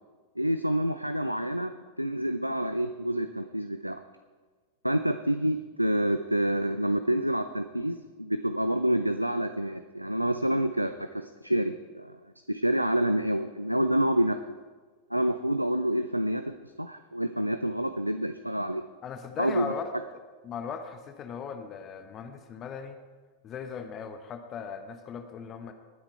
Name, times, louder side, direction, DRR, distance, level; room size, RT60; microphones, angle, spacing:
voice 1, 0.4-4.0 4.8-12.2 12.5-14.4 15.1-18.8 19.4-19.7, right 1 dB, 90° right, 10 dB, 0.5 m, -28 dB
voice 2, 19.0-19.9 20.4-23.0 23.4-25.7, left 6 dB, 30° left, 8 dB, 1.2 m, -38 dB
20.0 x 10.0 x 4.5 m, 1.4 s
figure-of-eight pair, 90°, 0 cm